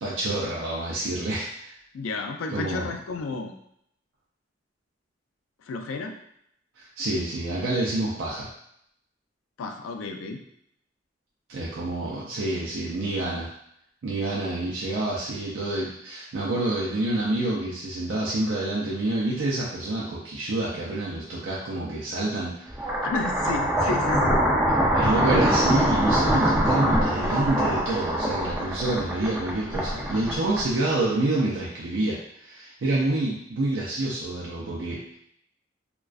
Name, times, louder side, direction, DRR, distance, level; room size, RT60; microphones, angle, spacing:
voice 1, 0.0-1.7 2.5-2.9 6.8-8.5 11.5-13.5 14.0-22.8 24.9-35.2, right 2 dB, 70° right, -6 dB, 0.4 m, -28 dB
voice 2, 1.9-3.5 5.7-6.1 9.6-10.4 23.0-24.4, left 3 dB, 90° left, 5 dB, 0.3 m, -31 dB
sound 1, 22.7-31.0, equal, 10° right, 0.4 m, -23 dB
2.4 x 2.2 x 2.3 m, 0.72 s
head